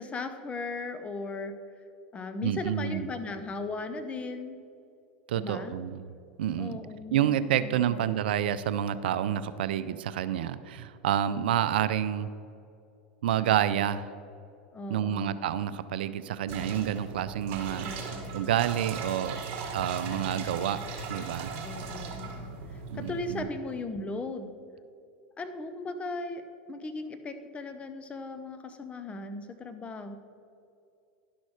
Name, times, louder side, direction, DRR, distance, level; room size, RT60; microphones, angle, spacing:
voice 1, 0.0-1.6 2.1-4.6 5.4-5.8 6.6-8.1 14.7-15.4 17.8-18.4 21.6-24.5 25.4-26.4 26.7-30.2, left 3 dB, 20° left, 9 dB, 0.9 m, -37 dB
voice 2, 2.4-3.1 5.3-6.0 6.4-6.8 7.1-12.3 13.2-14.1 14.9-17.9 18.3-19.4 19.7-20.8 21.1-21.5 22.9-23.5, right 10 dB, 75° right, 14 dB, 0.4 m, -28 dB
sound 1, 16.5-23.4, right 4 dB, 50° right, 1.6 m, -38 dB
11.0 x 6.2 x 4.8 m, 2.6 s
hypercardioid pair, 95°, 5 cm